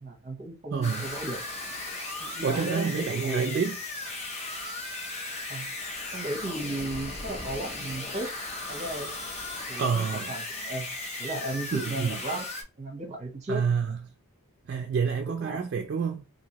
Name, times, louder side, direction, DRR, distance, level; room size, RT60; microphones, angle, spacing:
voice 1, 0.0-1.4 2.2-3.7 5.5-5.7 6.1-8.3 8.7-9.1 9.7-10.9 11.2-12.5 12.8-13.6 15.2-15.7, right 2 dB, 30° right, 0.8 m, -35 dB
voice 2, 0.7-1.1 2.4-3.8 9.8-10.3 11.7-12.2 13.5-14.0 14.7-16.2, right 6 dB, 50° right, 0.3 m, -28 dB
sound 1, 0.8-12.6, left 2 dB, 30° left, 0.5 m, -36 dB
2.9 x 2.7 x 2.8 m
head